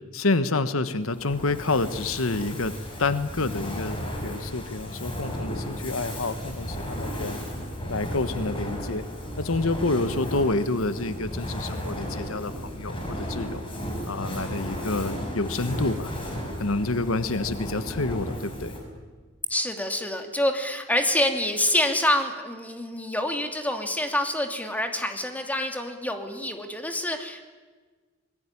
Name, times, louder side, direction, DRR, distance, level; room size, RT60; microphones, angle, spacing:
voice 1, 0.1-2.7 3.0-7.4 7.9-9.1 9.4-13.6 14.0-16.1 16.6-18.7, left 3 dB, 85° left, 12 dB, 1.3 m, -28 dB
Fire, 1.0-19.0, equal, 25° left, 6.1 m, -34 dB
voice 2, 19.5-27.5, left 1 dB, 10° left, 5 dB, 2.7 m, -27 dB
26.5 x 21.0 x 9.9 m, 1.4 s
head